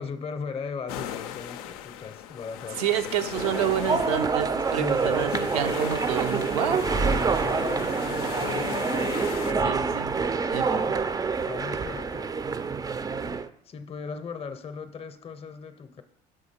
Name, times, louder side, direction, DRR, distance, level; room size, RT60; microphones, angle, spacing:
voice 1, 0.0-2.8 4.8-5.2 6.9-9.0 9.4-9.8 10.9-11.0 11.5-12.4 13.6-16.0, left 5 dB, 30° left, 0.6 m, -38 dB
sound 1, 0.9-9.5, left 10 dB, 85° left, 0.4 m, -37 dB
voice 2, 2.8-6.8 9.6-10.1 10.5-10.9, right 9 dB, 85° right, 0.6 m, -29 dB
sound 2, 3.3-13.5, right 5 dB, 20° right, 0.4 m, -27 dB
6.2 x 4.9 x 4.3 m
hypercardioid pair, 70°, 18 cm